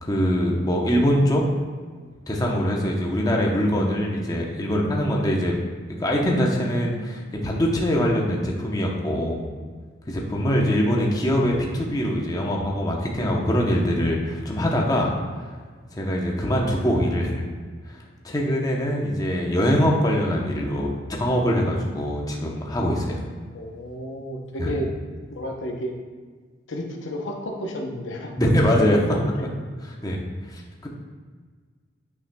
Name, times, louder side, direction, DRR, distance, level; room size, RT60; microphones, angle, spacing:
voice 1, 0.0-1.4 2.3-5.6 6.0-9.4 10.1-15.1 15.4-15.5 16.0-17.4 17.9-18.0 18.2-23.2 24.6-24.7 28.4-29.0 30.0-30.2 30.5-30.9, equal, 20° left, -1 dB, 0.8 m, -23 dB
voice 2, 23.5-24.9 25.3-25.9 26.7-28.3 28.7-29.5, equal, 80° left, 2 dB, 0.8 m, -32 dB
8.5 x 5.8 x 2.3 m, 1.6 s
head